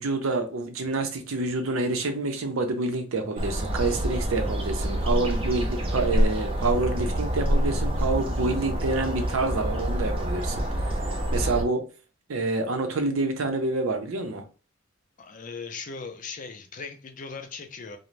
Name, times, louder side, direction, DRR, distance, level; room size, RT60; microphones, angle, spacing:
voice 1, 0.0-11.8 12.3-14.4, right 3 dB, 80° right, 0.6 m, -28 dB
sound 1, 3.4-11.6, equal, 25° right, 0.4 m, -27 dB
voice 2, 15.2-18.0, left 4 dB, 40° left, 0.4 m, -38 dB
2.5 x 2.1 x 3.1 m
head